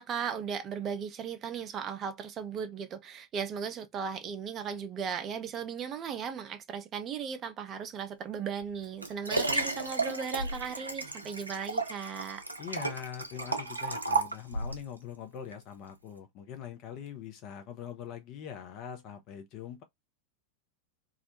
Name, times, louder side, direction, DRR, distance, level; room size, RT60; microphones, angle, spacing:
voice 1, 0.0-12.4, right 7 dB, 30° right, 0.5 m, -37 dB
Liquid, 8.6-14.9 15.5-15.6, right 3 dB, 85° right, 0.4 m, -33 dB
voice 2, 12.6-19.8, left 8 dB, 40° left, 0.5 m, -43 dB
2.4 x 2.1 x 2.8 m
figure-of-eight pair, 90°, 0 cm